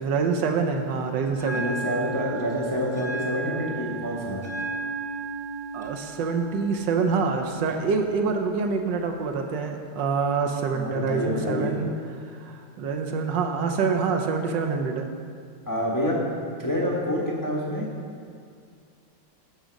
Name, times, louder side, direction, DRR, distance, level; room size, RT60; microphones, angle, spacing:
voice 1, 0.0-1.8 5.7-12.0 12.3-15.1, right 5 dB, 70° right, 4 dB, 1.3 m, -26 dB
Bell, 1.3-9.3, right 3 dB, 20° right, 0.9 m, -36 dB
voice 2, 1.5-4.4 10.7-11.7 15.7-16.2 16.6-17.9, equal, 15° left, -4 dB, 0.7 m, -27 dB
9.0 x 7.0 x 5.1 m, 2.2 s
omnidirectional pair, 2.2 m